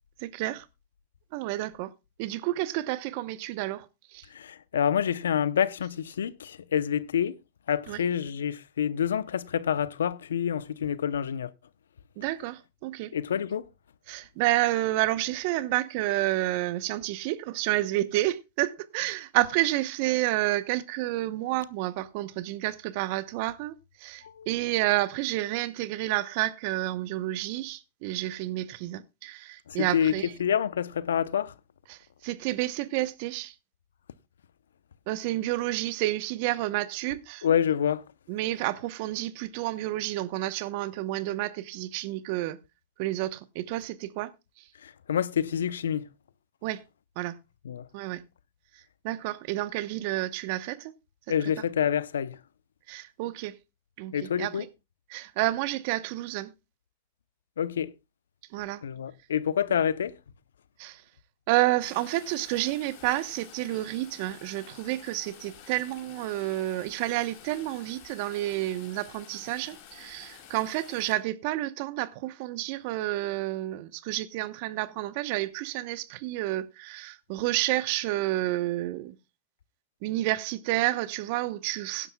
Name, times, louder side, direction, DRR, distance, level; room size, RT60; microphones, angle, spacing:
voice 1, 0.2-0.7 1.3-1.9 2.2-3.9 4.1-4.3 7.9-8.1 12.2-13.1 14.1-30.3 31.9-33.5 35.1-37.5 38.3-42.6 43.0-44.6 46.6-46.8 47.2-47.4 47.9-48.2 49.0-50.9 51.4-51.5 52.9-53.5 54.0-54.7 55.1-56.5 58.5-58.8 60.8-61.0 61.5-79.2 80.0-82.1, right 17 dB, 55° right, 0.9 m, -30 dB
voice 2, 4.3-7.4 7.7-11.5 13.1-13.6 24.2-24.5 29.7-30.1 30.4-31.5 37.4-38.0 44.8-46.1 47.6-47.9 51.3-52.4 54.1-54.7 57.6-57.9 58.8-60.1, left 8 dB, 80° left, 0.7 m, -27 dB
sound 1, 61.8-71.1, left 8 dB, 55° left, 4.8 m, -50 dB
17.5 x 11.0 x 2.2 m
hypercardioid pair, 105°, 0 cm